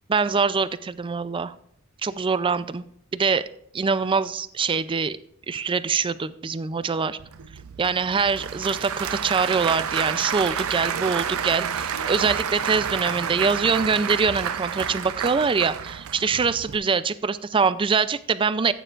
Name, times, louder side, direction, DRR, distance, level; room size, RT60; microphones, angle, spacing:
voice 1, 0.1-1.5 2.0-2.9 3.1-3.4 3.7-5.2 5.5-7.2 7.8-18.7, right 5 dB, 25° right, 15 dB, 0.4 m, -24 dB
Applause / Crowd, 7.2-16.8, right 7 dB, 80° right, 0.6 m, -29 dB
14.5 x 9.1 x 2.5 m, 0.68 s
head